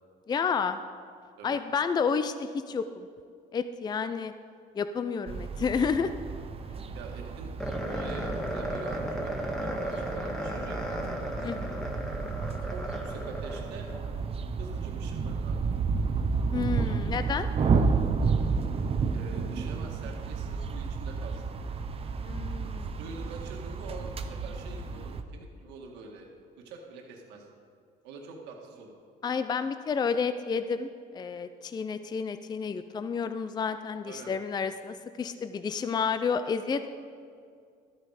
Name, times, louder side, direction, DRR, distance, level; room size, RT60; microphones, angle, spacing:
voice 1, 0.3-0.8 1.4-3.1 3.5-4.3 4.7-6.1 11.4-11.9 16.5-17.5 22.2-22.9 29.2-36.9, left 5 dB, 25° left, 10 dB, 0.4 m, -30 dB
sound 1, 5.3-25.2, right 5 dB, 35° right, 0.7 m, -32 dB
voice 2, 6.9-7.5 7.8-11.0 12.6-13.9 14.6-15.7 17.6-17.8 19.1-21.7 23.0-26.3 26.6-27.5 28.0-28.9 34.1-34.3, right 4 dB, 90° right, 1 dB, 1.7 m, -45 dB
sound 2, 7.6-14.0, equal, 5° left, 1.5 m, -35 dB
12.5 x 8.8 x 4.9 m, 2.2 s
cardioid pair, 110°, 17 cm